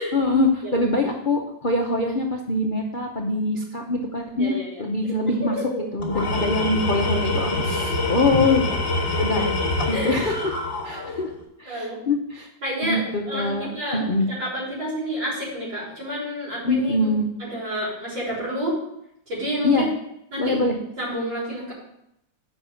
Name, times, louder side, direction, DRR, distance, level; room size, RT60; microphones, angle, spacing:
voice 1, 0.1-5.6 5.9-8.7 9.0-9.5 9.9-10.4 10.8-11.3 11.6-12.5 12.8-14.3 16.6-17.3 19.6-19.9 20.4-20.8, left 2 dB, 55° left, 1 dB, 0.5 m, -23 dB
voice 2, 4.4-4.8 5.4-5.8 9.2-9.3 9.9-10.1 11.7-12.0 12.6-17.1 17.5-18.8 19.3-19.9 20.3-20.6 21.0-21.7, equal, 80° right, -6 dB, 4.7 m, -29 dB
Tools, 6.0-11.4, left 2 dB, 30° left, 1.6 m, -25 dB
7.1 x 5.3 x 6.7 m, 0.78 s
omnidirectional pair, 2.0 m